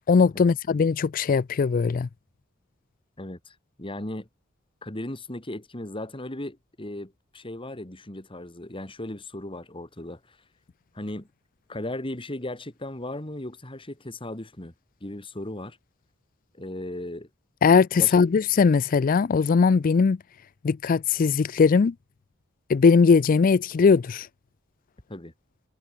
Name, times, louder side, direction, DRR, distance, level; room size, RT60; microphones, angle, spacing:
voice 1, 0.1-2.1 17.6-20.2 20.6-21.9 22.7-24.3, left 5 dB, 45° left, 0.4 m, -20 dB
voice 2, 3.2-4.3 4.8-10.2 10.9-11.3 11.7-14.7 15.0-15.8 16.5-17.3 18.0-18.1 25.1-25.3, left 1 dB, 25° left, 2.6 m, -36 dB
head